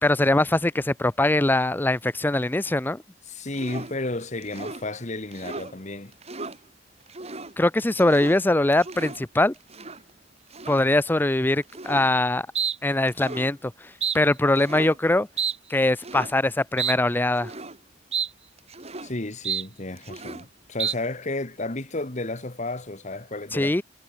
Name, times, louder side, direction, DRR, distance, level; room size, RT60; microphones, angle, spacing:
voice 1, 0.0-3.0 7.6-9.5 10.7-12.5 12.8-13.7 14.1-15.3 15.7-17.5 23.5-23.8, left 1 dB, 10° left, 0.5 m, -22 dB
voice 2, 3.3-6.2 19.0-23.7, left 2 dB, 40° left, 1.7 m, -32 dB
sound 1, 3.5-3.9 4.4-4.8 5.3-5.7 6.1-6.6 7.1-7.5 7.9-8.4 8.7-9.2 9.7-10.0 10.5-10.9 11.7-12.1 12.5-12.8 13.1-13.5 14.0-14.2 14.6-15.0 15.4-15.6 16.0-16.3 16.8-17.0 17.3-17.8 18.1-18.3 18.6-19.1 19.4-19.7 20.0-20.4 20.8-20.9, right 6 dB, 35° right, 2.7 m, -32 dB
head